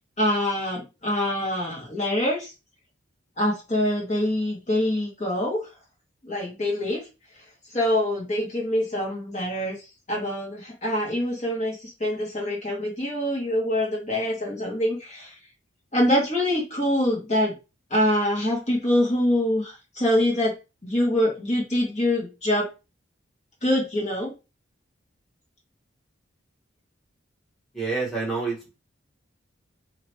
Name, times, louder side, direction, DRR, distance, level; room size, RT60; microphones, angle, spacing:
voice 1, 0.2-2.5 3.4-5.7 6.2-7.0 7.7-9.8 10.1-15.4 15.9-17.5 17.9-20.5 20.8-22.7 23.6-24.3, left 1 dB, 35° left, -3 dB, 2.0 m, -25 dB
voice 2, 27.7-28.7, right 4 dB, ahead, -6 dB, 1.9 m, -28 dB
3.7 x 3.1 x 4.6 m, 0.28 s
head